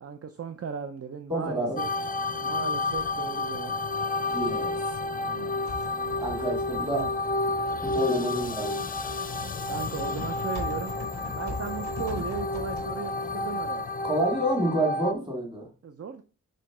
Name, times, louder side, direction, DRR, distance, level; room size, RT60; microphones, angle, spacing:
voice 1, 0.0-1.9 2.4-3.7 5.2-6.2 6.9-7.1 8.3-8.7 9.7-11.0 11.3-13.9 15.8-16.2, right 6 dB, 50° right, 8 dB, 0.6 m, -37 dB
voice 2, 1.3-1.8 4.3-4.8 6.2-7.1 7.9-8.8 14.0-15.7, right 1 dB, 15° right, 0 dB, 2.3 m, -28 dB
sound 1, 1.8-15.1, left 2 dB, 25° left, 0.6 m, -30 dB
Typing, 2.8-13.9, left 2 dB, 90° right, 3.6 m, -43 dB
5.0 x 4.5 x 6.0 m, 0.35 s
wide cardioid pair, 160°, 32 cm